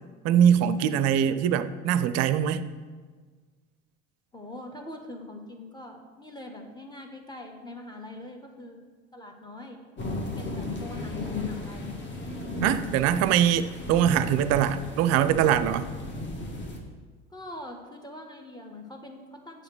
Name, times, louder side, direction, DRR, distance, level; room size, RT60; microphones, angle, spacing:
voice 1, 0.2-2.6 12.6-15.9, right 9 dB, 45° right, 13 dB, 0.5 m, -22 dB
voice 2, 4.3-8.8 9.1-9.8 10.4-12.0 17.3-19.6, left 1 dB, 10° left, 3 dB, 1.2 m, -43 dB
sound 1, 10.0-16.8, left 2 dB, 30° left, 1.6 m, -35 dB
7.5 x 4.9 x 6.2 m, 1.5 s
figure-of-eight pair, 65°, 37 cm